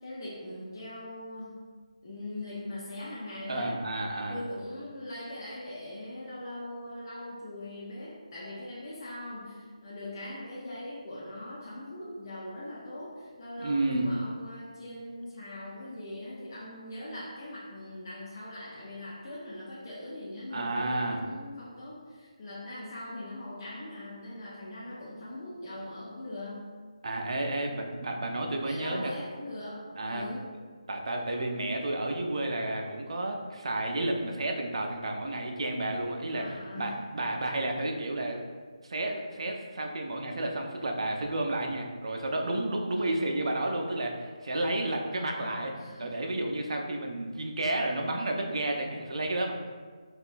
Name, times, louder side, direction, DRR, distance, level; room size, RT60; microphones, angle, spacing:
voice 1, 0.0-1.6 2.0-3.7 4.3-26.6 28.6-30.5 36.3-37.0 43.0-43.3 45.1-46.2, left 1 dB, 35° left, -8 dB, 0.5 m, -41 dB
voice 2, 3.5-4.4 13.6-14.1 20.5-21.2 27.0-29.1 30.0-30.2 30.9-38.4 38.8-45.7 46.0-49.5, right 1 dB, 55° right, 2 dB, 0.4 m, -31 dB
3.5 x 2.2 x 2.5 m, 1.5 s
figure-of-eight pair, 160°, 3 cm